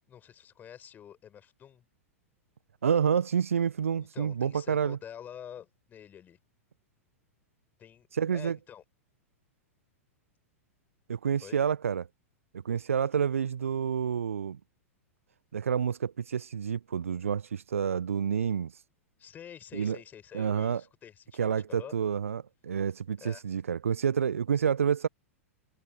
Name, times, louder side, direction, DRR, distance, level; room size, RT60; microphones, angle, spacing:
voice 1, 0.1-1.8 4.0-6.4 7.8-8.1 8.3-8.8 11.4-11.6 19.2-21.9 23.2-23.4, left 9 dB, 25° left, 7.2 m, -48 dB
voice 2, 2.8-5.0 8.1-8.6 11.1-12.1 12.6-14.6 15.5-18.7 19.7-20.0 20.3-20.8 21.4-25.1, right 7 dB, 70° right, 1.0 m, -28 dB
figure-of-eight pair, 95°, 8 cm